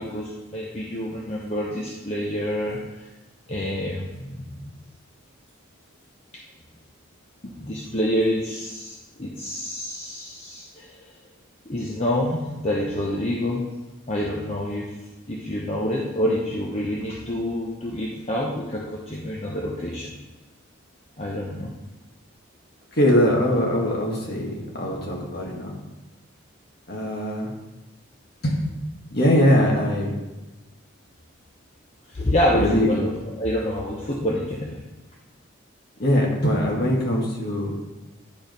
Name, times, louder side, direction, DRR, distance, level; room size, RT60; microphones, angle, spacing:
voice 1, 0.0-3.1 3.5-4.7 7.4-11.0 11.7-13.6 14.1-14.9 15.3-20.1 21.2-21.7 32.1-34.8, left 1 dB, 30° left, -3 dB, 0.8 m, -27 dB
voice 2, 23.0-25.7 26.9-27.5 28.4-28.6 29.1-30.1 32.5-32.9 36.0-37.7, equal, 50° left, -1 dB, 1.7 m, -21 dB
10.5 x 4.7 x 5.3 m, 1.1 s
head